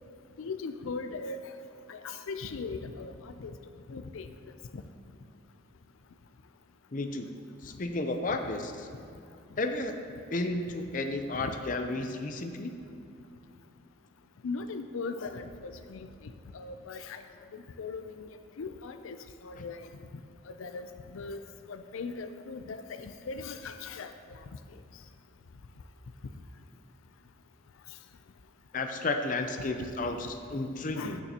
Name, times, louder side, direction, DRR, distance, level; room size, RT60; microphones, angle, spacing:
voice 1, 0.4-1.4 1.9-3.5 3.9-4.3 4.7-4.8 11.4-11.5 14.4-16.1 16.5-17.2 17.5-19.2 19.4-19.9 20.5-20.9 21.1-21.4 21.7-24.4 29.6-29.8 31.0-31.2, left 4 dB, 90° left, 9 dB, 0.5 m, -39 dB
voice 2, 6.9-7.3 7.6-8.9 9.6-9.9 10.3-12.7 28.7-31.2, left 2 dB, 40° left, 5 dB, 0.5 m, -32 dB
15.0 x 6.8 x 2.9 m, 2.6 s
head